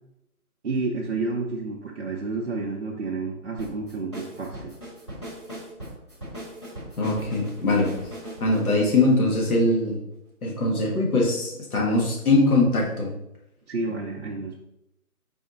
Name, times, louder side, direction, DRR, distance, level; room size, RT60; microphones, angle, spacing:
voice 1, 0.6-4.7 13.7-14.6, right 3 dB, 50° right, -3 dB, 0.6 m, -30 dB
sound 1, 3.6-9.9, right 1 dB, 20° left, 0.8 m, -39 dB
voice 2, 7.0-7.9 8.4-10.0 10.4-13.1, left 2 dB, 70° left, -2 dB, 1.6 m, -22 dB
4.2 x 2.7 x 3.8 m, 0.85 s
hypercardioid pair, 170°, 44 cm